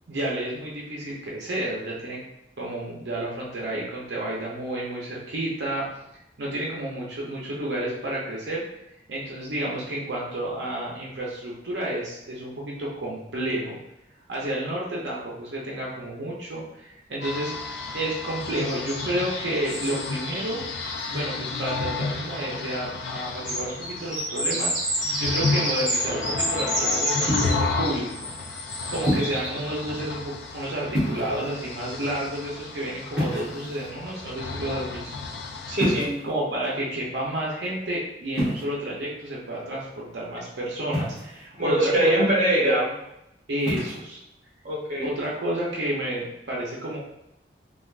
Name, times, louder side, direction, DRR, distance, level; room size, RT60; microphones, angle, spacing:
voice 1, 0.1-2.2 2.6-5.9 6.4-8.6 9.1-13.8 14.3-17.5 17.9-20.6 21.1-28.3 28.9-35.2 36.2-42.3 43.5-44.2 45.0-47.0, right 1 dB, 75° right, -4 dB, 0.6 m, -30 dB
sound 1, 17.2-36.1, left 4 dB, 70° left, 0.4 m, -32 dB
sound 2, 18.6-21.5 22.3-22.4 22.7-29.9 31.7-31.8 32.2-32.4, equal, 20° left, 1.0 m, -30 dB
sound 3, 27.3-27.7 29.1-29.5 30.9-31.5 33.1-33.9 35.8-36.3 38.3-38.6 40.9-41.4 43.6-44.0, equal, 5° right, 1.1 m, -27 dB
voice 2, 35.7-36.1 41.6-42.9 44.6-45.1, right 1 dB, 45° right, -4 dB, 0.9 m, -22 dB
3.3 x 2.4 x 2.4 m, 0.84 s
head